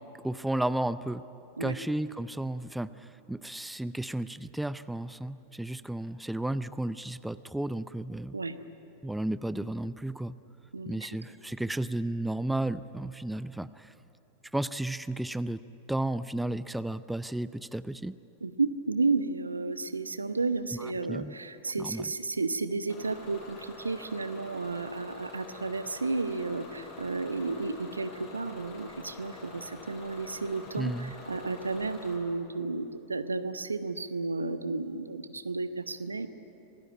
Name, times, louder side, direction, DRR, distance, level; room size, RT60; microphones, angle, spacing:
voice 1, 0.2-1.2 1.6-8.3 9.0-10.4 10.9-13.9 14.5-15.6 15.9-18.2 20.7-21.3 21.8-22.1 30.8-31.1, right 1 dB, 5° right, 16 dB, 0.5 m, -33 dB
voice 2, 18.4-36.3, right 3 dB, 80° right, 12 dB, 1.0 m, -32 dB
Bus / Engine, 22.9-32.2, left 3 dB, 40° left, 7.1 m, -47 dB
26.0 x 18.0 x 9.0 m, 2.9 s
figure-of-eight pair, 90°, 0 cm